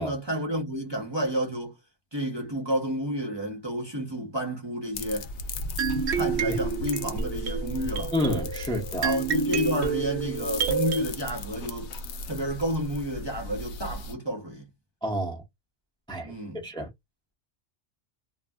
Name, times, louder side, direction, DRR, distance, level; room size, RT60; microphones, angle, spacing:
voice 1, 0.0-1.8 2.1-5.3 6.1-8.1 9.0-11.9 12.3-14.7 16.2-16.6, equal, 25° right, 0.8 m, -30 dB
sound 1, 4.9-14.1, left 2 dB, 75° left, 0.9 m, -36 dB
sound 2, 5.8-11.0, right 6 dB, 75° right, 0.9 m, -29 dB
voice 2, 8.1-9.2 15.0-15.4 16.1-16.9, equal, 5° left, 0.7 m, -30 dB
2.6 x 2.1 x 3.3 m
omnidirectional pair, 1.2 m